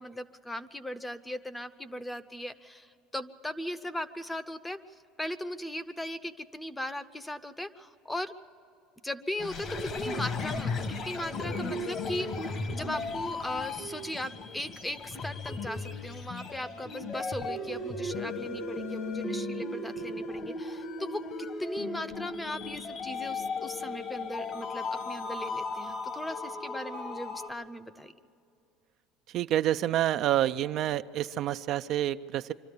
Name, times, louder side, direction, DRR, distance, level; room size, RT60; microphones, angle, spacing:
voice 1, 0.0-4.8 5.2-8.3 9.0-12.3 12.7-28.1, left 1 dB, 10° left, 12 dB, 0.7 m, -38 dB
sound 1, 9.4-27.5, left 3 dB, 45° left, 1.4 m, -36 dB
voice 2, 29.3-32.5, right 12 dB, 55° right, 10 dB, 0.4 m, -28 dB
25.0 x 13.0 x 8.3 m, 2.6 s
supercardioid pair, 125°, 0 cm